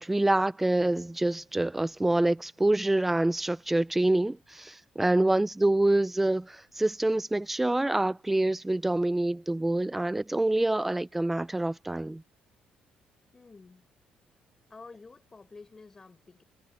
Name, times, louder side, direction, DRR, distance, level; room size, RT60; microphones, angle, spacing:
voice 1, 0.0-12.2, right 1 dB, 10° right, 0.5 m, -26 dB
voice 2, 13.3-13.8 14.7-16.4, left 4 dB, 20° left, 4.4 m, -50 dB
cardioid pair, 145°, 3 cm